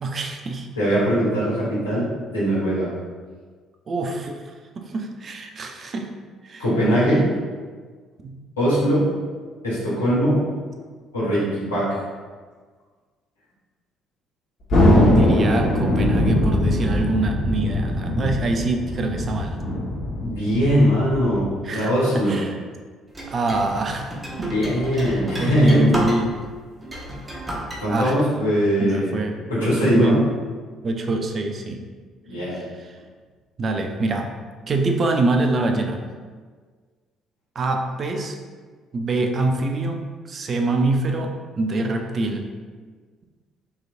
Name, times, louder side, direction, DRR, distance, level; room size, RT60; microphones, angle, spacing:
voice 1, 0.0-0.7 3.9-4.4 4.8-6.1 6.4-7.3 8.2-8.4 15.0-19.6 21.6-22.6 23.3-24.1 24.4-24.7 24.9-26.3 27.9-28.2 28.8-30.3 30.8-31.8 32.5-32.9 33.6-34.3 34.7-36.0 37.5-38.4 38.9-40.0 40.3-42.4, right 2 dB, 45° right, 4 dB, 0.5 m, -25 dB
voice 2, 0.8-2.9 6.6-7.2 8.6-9.1 9.6-10.4 11.1-11.9 20.2-22.4 24.4-26.1 27.8-29.2 29.5-30.2 32.3-32.6, equal, 90° left, -9 dB, 1.3 m, -21 dB
Thunder, 14.7-21.5, left 1 dB, 55° left, 1.3 m, -21 dB
sound 1, 23.1-26.5 26.8-27.8, equal, 20° right, 1.0 m, -30 dB
4.7 x 3.1 x 2.5 m, 1.5 s
hypercardioid pair, 50°, 0 cm